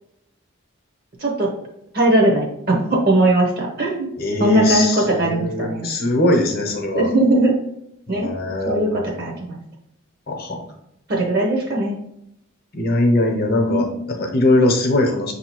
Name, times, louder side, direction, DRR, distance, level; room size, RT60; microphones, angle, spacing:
voice 1, 1.9-4.1 4.4-5.9 6.9-7.6 8.1-8.3 8.6-9.6 11.1-12.0 13.7-13.8, right 1 dB, 45° right, 0 dB, 0.8 m, -19 dB
voice 2, 4.2-7.1 8.1-9.1 10.3-10.6 12.7-15.3, left 1 dB, 45° left, 1 dB, 0.8 m, -21 dB
6.3 x 2.8 x 3.0 m, 0.79 s
head